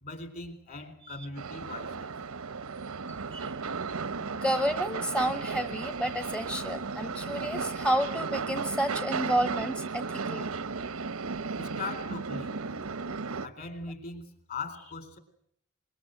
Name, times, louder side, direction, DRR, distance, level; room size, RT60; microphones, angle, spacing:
voice 1, 0.0-2.1 11.6-12.6 13.4-15.2, left 3 dB, 45° left, 9 dB, 4.1 m, -40 dB
sound 1, 1.4-13.5, right 4 dB, 85° right, 0.9 m, -35 dB
voice 2, 3.1-3.5 4.4-10.5, right 1 dB, 5° left, 9 dB, 0.9 m, -30 dB
24.0 x 22.0 x 7.8 m, 0.72 s
head